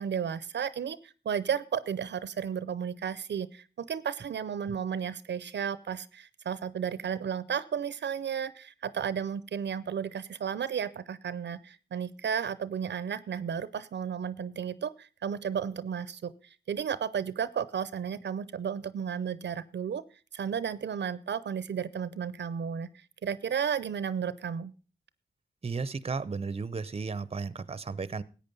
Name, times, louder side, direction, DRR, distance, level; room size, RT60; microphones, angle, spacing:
voice 1, 0.0-20.0 20.3-24.7, right 7 dB, 75° right, 18 dB, 0.6 m, -33 dB
voice 2, 25.6-28.2, right 4 dB, 35° right, 19 dB, 0.7 m, -34 dB
14.0 x 8.7 x 5.3 m, 0.36 s
cardioid pair, 70°, 18 cm